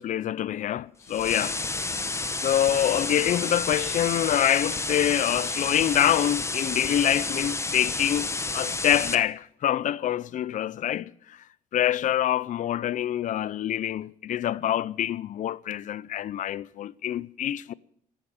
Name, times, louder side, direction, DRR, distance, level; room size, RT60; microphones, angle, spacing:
voice 1, 0.0-1.6 2.4-11.4 11.7-17.7, left 11 dB, 50° left, 0.6 m, -26 dB
sound 1, 1.1-9.1, left 3 dB, 15° left, 1.3 m, -30 dB
13.0 x 11.0 x 9.7 m
cardioid pair, 110°, 17 cm